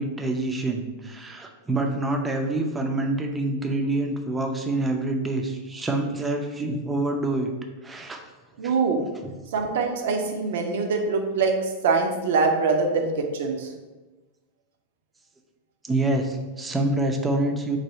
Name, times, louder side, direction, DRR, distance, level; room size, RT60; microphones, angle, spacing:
voice 1, 0.0-7.5 7.8-8.2 8.6-8.7 9.2-9.3 15.8-17.8, right 2 dB, 15° right, 3 dB, 0.5 m, -26 dB
voice 2, 8.6-9.0 9.5-11.6 11.8-13.7, right 4 dB, 55° right, 4 dB, 0.6 m, -23 dB
4.0 x 2.7 x 4.3 m, 1.2 s
figure-of-eight pair, 90°, 0 cm